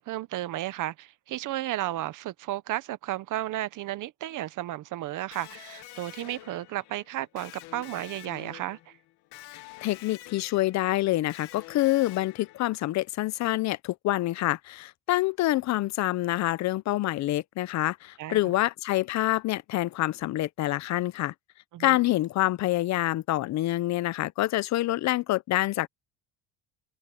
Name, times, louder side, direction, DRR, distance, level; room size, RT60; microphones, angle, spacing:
voice 1, 0.0-8.9 18.2-18.4 21.7-22.0, right 14 dB, 50° right, 0.7 m, -33 dB
Electric guitar, 5.3-13.0, left 17 dB, 70° left, 1.3 m, -48 dB
voice 2, 9.5-21.3 21.8-25.9, left 16 dB, 45° left, 0.5 m, -27 dB
cardioid pair, 175°, 41 cm